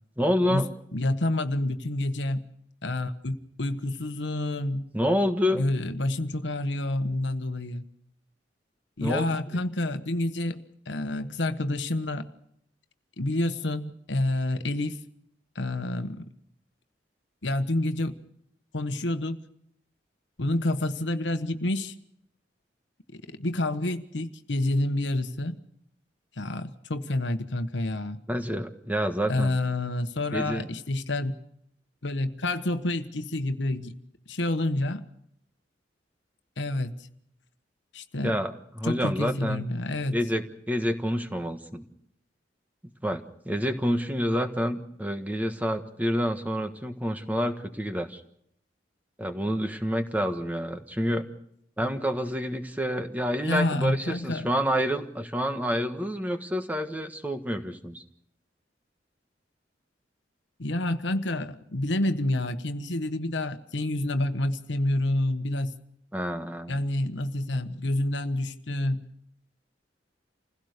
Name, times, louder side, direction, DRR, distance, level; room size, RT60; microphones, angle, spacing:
voice 1, 0.2-0.7 4.9-5.6 9.0-9.3 28.3-29.6 30.3-30.7 38.2-39.6 40.1-41.8 43.0-48.2 49.2-51.3 51.8-58.0 66.1-66.8, equal, 10° right, 7 dB, 1.4 m, -28 dB
voice 2, 0.9-2.4 2.8-4.8 5.5-7.8 9.0-12.3 13.2-15.0 15.5-16.2 17.4-18.1 18.7-19.4 20.4-21.9 23.4-25.6 26.4-28.2 29.3-31.3 32.0-34.0 34.3-35.0 36.6-37.1 37.9-38.4 38.8-40.2 53.4-54.5 60.6-65.7 66.7-69.0, left 1 dB, 80° left, 9 dB, 1.2 m, -28 dB
27.0 x 16.5 x 6.7 m, 0.72 s
head